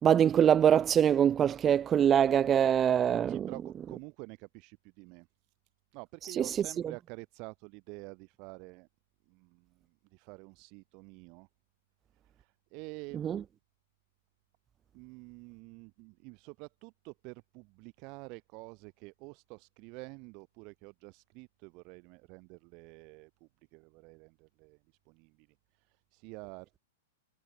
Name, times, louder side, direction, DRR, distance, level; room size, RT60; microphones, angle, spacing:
voice 1, 0.0-3.5 6.4-6.5 13.1-13.4, right 9 dB, 25° right, 1.6 m, -24 dB
voice 2, 3.3-5.3 5.9-8.9 9.3-11.5 12.2-13.3 14.9-24.8 25.1-25.5 25.8-26.8, right 30 dB, 45° right, 7.4 m, -48 dB
hypercardioid pair, 120°, 0 cm